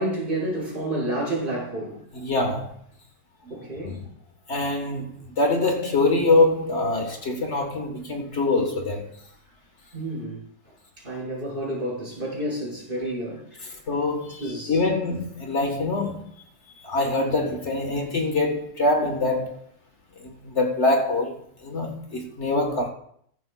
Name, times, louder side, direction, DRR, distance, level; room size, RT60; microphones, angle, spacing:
voice 1, 0.0-2.0 3.5-4.0 9.9-10.4 11.0-13.4 14.4-14.8, right 1 dB, 30° right, 5.0 m, -30 dB
voice 2, 2.1-2.7 3.4-3.6 4.5-9.1 13.9-16.3 16.8-19.6 20.2-22.9, left 2 dB, 45° left, 1.4 m, -24 dB
15.0 x 12.0 x 2.2 m
omnidirectional pair, 1.9 m